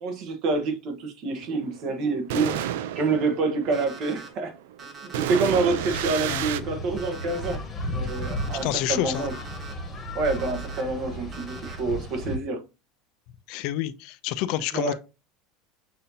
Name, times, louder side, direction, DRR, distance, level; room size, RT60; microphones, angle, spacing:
voice 1, 0.0-2.6 2.9-4.5 5.0-7.6 7.9-9.3 10.1-12.6 14.7-14.9, right 3 dB, 45° right, 1.0 m, -27 dB
sound 1, 1.4-6.6, right 11 dB, 85° right, 0.4 m, -31 dB
Alarm, 3.7-4.3 4.8-5.4 5.9-6.5 7.0-7.6 8.1-8.6 9.1-9.7 10.2-10.8 11.3-11.8, right 4 dB, 30° right, 1.0 m, -43 dB
sound 2, 5.4-12.4, equal, 20° left, 1.1 m, -34 dB
voice 2, 8.6-9.3 13.5-14.9, left 13 dB, 60° left, 0.4 m, -28 dB
6.6 x 2.7 x 2.7 m
supercardioid pair, 145°, 0 cm